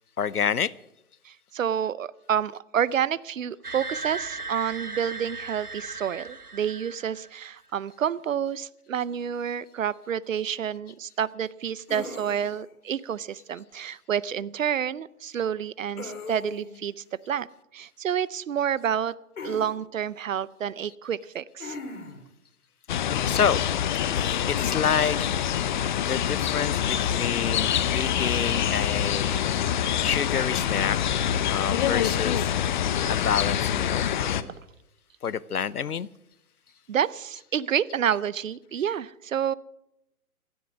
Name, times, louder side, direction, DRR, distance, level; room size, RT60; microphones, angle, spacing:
voice 1, 0.2-0.7 23.3-23.6 24.5-25.3 26.1-29.4 30.0-31.0 31.5-32.5 33.1-34.1 35.2-36.1, left 7 dB, 80° left, 0.8 m, -28 dB
voice 2, 1.2-17.5 17.7-19.1 19.4-21.8 33.1-33.2 36.9-39.5, right 9 dB, 60° right, 0.7 m, -29 dB
sound 1, 3.6-7.4, right 3 dB, 80° right, 1.8 m, -37 dB
sound 2, 11.9-12.7 16.0-16.8 19.4-19.7 21.6-22.3 24.1-24.4, left 3 dB, 65° left, 3.4 m, -38 dB
sound 3, 22.9-34.4, left 9 dB, 30° left, 0.8 m, -26 dB
17.5 x 13.5 x 6.2 m
figure-of-eight pair, 125°, 44 cm